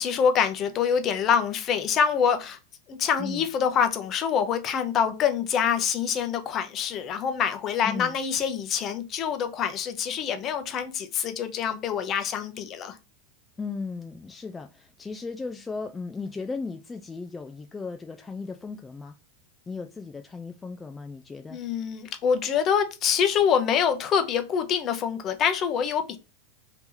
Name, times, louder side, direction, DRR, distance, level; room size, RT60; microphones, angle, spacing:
voice 1, 0.0-2.6 2.9-13.0 21.5-26.2, left 7 dB, 35° left, 0.7 m, -25 dB
voice 2, 7.8-8.2 13.6-19.2 19.7-21.6, left 4 dB, 15° left, 0.3 m, -36 dB
2.9 x 2.8 x 3.7 m
hypercardioid pair, 115°, 0 cm